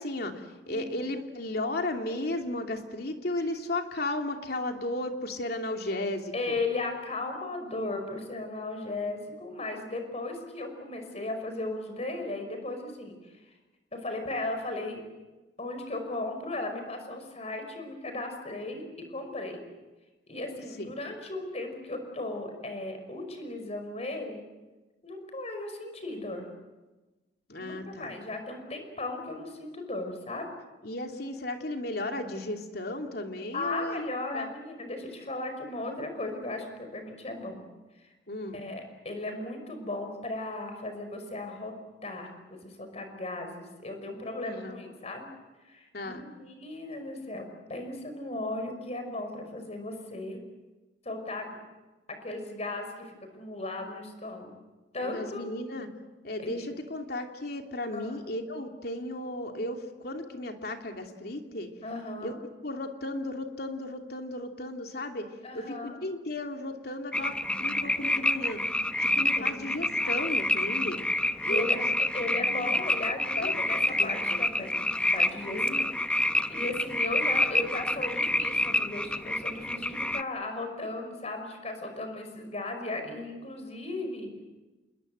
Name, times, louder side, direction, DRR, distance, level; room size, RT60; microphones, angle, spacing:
voice 1, 0.0-6.6 20.8-20.9 27.5-28.1 30.8-34.5 38.3-38.6 44.4-44.8 45.9-46.3 55.0-55.9 56.2-61.7 62.2-62.3 62.6-65.3 65.5-68.6 69.0-71.0 71.4-71.9 72.5-72.7 73.4-73.5 73.9-74.5 75.5-75.9, left 1 dB, 60° left, 4 dB, 2.9 m, -35 dB
voice 2, 6.3-13.3 13.9-15.0 15.6-19.6 20.3-24.4 25.0-26.5 27.6-30.5 33.5-37.6 38.0-38.1 38.5-41.7 42.0-45.3 45.7-50.4 51.1-51.6 52.1-54.5 54.9-55.6 56.4-56.6 57.9-58.1 61.8-62.4 65.4-66.0 69.4-69.7 71.4-71.8 72.1-75.9 76.5-84.4, left 2 dB, 40° left, 6 dB, 5.5 m, -36 dB
sound 1, 67.1-80.2, left 1 dB, 5° left, 0.8 m, -28 dB
28.0 x 21.5 x 8.0 m, 1.1 s
head